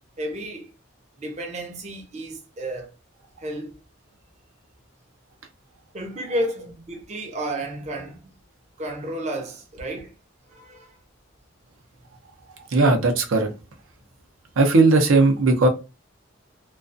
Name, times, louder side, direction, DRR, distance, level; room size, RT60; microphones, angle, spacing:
voice 1, 0.2-0.7 1.2-2.9 3.4-3.7 5.9-8.2 8.8-10.1 10.5-11.0, right 1 dB, 35° right, 0.5 m, -32 dB
voice 2, 12.7-13.5 14.6-15.7, right 3 dB, 85° right, 0.6 m, -17 dB
2.3 x 2.3 x 2.5 m
head